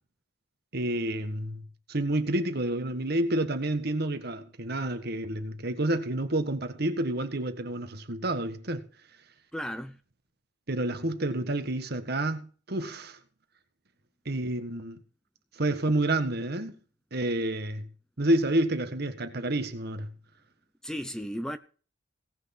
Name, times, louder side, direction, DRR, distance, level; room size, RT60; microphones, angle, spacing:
voice 1, 0.7-1.6 1.9-8.9 10.7-13.2 14.2-15.0 15.6-16.7 17.1-17.9 18.2-20.1, right 1 dB, 60° right, 1.6 m, -29 dB
voice 2, 9.5-10.0 20.8-21.6, equal, 5° left, 0.7 m, -34 dB
17.5 x 6.3 x 6.1 m
head